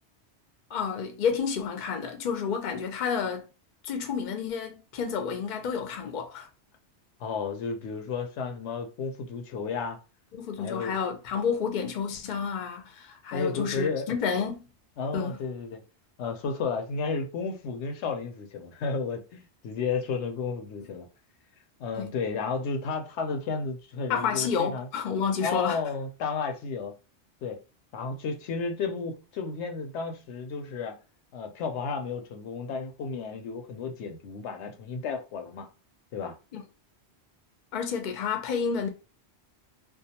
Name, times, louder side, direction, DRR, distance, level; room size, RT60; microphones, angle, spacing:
voice 1, 0.7-3.4 3.8-6.5 10.3-14.6 15.1-15.4 21.9-22.1 24.1-25.8 36.5-36.6 37.7-38.9, left 6 dB, 55° left, 0.6 m, -30 dB
voice 2, 7.2-10.0 10.6-11.0 13.3-14.1 15.0-15.8 16.2-21.1 21.8-24.9 25.4-26.9 27.4-27.6 27.9-31.0 31.3-35.7 36.1-36.4, left 5 dB, 80° left, 0.9 m, -32 dB
2.3 x 2.2 x 2.8 m
omnidirectional pair, 1.2 m